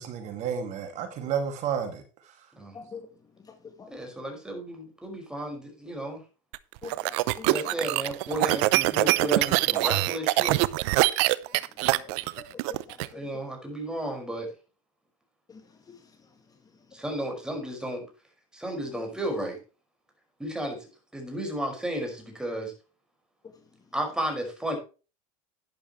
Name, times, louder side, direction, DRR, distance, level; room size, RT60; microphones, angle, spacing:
voice 1, 0.0-2.0, right 7 dB, 50° right, 7 dB, 2.3 m, -31 dB
voice 2, 2.7-3.1 3.8-3.9 6.8-7.8 11.9-12.1 12.4-13.0 15.5-15.6 18.9-19.0, left 5 dB, 25° left, 6 dB, 1.9 m, -44 dB
voice 3, 3.9-6.2 7.4-10.6 13.1-14.5 16.9-18.1 18.5-19.6 20.4-20.8 21.1-22.7 23.9-24.8, right 1 dB, 5° right, 2 dB, 5.5 m, -33 dB
sound 1, 6.5-13.1, right 20 dB, 65° right, 0.7 m, -24 dB
12.0 x 10.5 x 3.2 m, 0.33 s
supercardioid pair, 110°, 16 cm